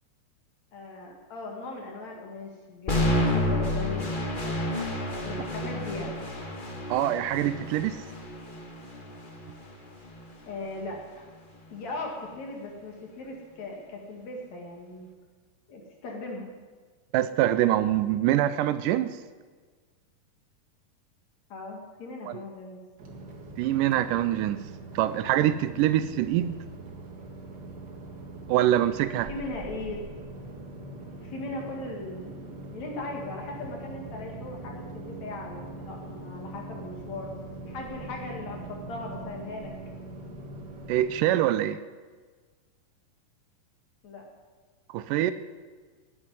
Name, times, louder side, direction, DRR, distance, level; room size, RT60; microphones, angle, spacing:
voice 1, 0.7-4.1 5.2-6.2 10.5-11.2 11.7-15.1 15.7-16.5 21.5-22.8 29.3-30.2 31.2-37.3 37.7-39.7 44.0-44.2, left 2 dB, 60° left, 0 dB, 3.3 m, -38 dB
sound 1, 2.9-10.9, left 1 dB, 30° left, 0.9 m, -30 dB
voice 2, 6.9-8.0 17.1-19.2 22.3-22.4 23.6-24.7 25.0-26.6 28.5-29.3 40.9-41.8 44.9-45.3, right 12 dB, 85° right, 13 dB, 2.2 m, -24 dB
sound 2, 23.0-41.3, right 2 dB, 40° right, 2.0 m, -42 dB
16.5 x 8.6 x 9.8 m, 1.5 s
omnidirectional pair, 3.7 m